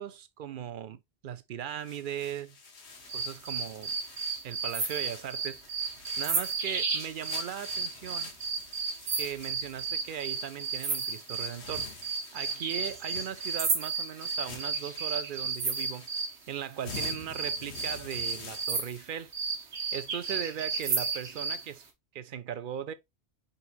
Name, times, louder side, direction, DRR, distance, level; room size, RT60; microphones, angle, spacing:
voice 1, 0.0-2.6 3.1-3.9 4.4-5.8 6.2-8.3 9.2-16.1 16.5-19.3 19.9-21.8 22.1-22.9, right 9 dB, 60° right, 0.6 m, -38 dB
sound 1, 1.7-19.1, left 5 dB, 75° left, 1.3 m, -48 dB
sound 2, 3.1-16.4 16.9-21.7, right 4 dB, 85° right, 1.4 m, -33 dB
4.2 x 4.0 x 2.4 m
omnidirectional pair, 1.1 m